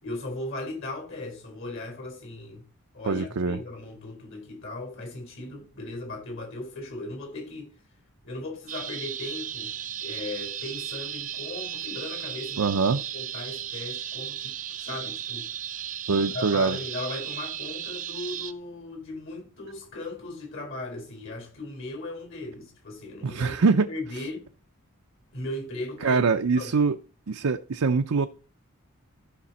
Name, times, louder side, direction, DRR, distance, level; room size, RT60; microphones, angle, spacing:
voice 1, 0.0-2.6 2.9-7.7 8.2-12.8 13.1-15.9 16.2-24.5 25.3-26.3 26.6-26.8, left 2 dB, 55° left, 4.7 m, -37 dB
voice 2, 3.0-3.6 12.6-13.0 16.1-16.8 23.2-23.9 26.0-27.0 27.3-28.3, right 4 dB, 75° right, 0.6 m, -23 dB
sound 1, 8.7-18.5, right 10 dB, 35° right, 0.5 m, -35 dB
14.5 x 5.9 x 4.2 m
head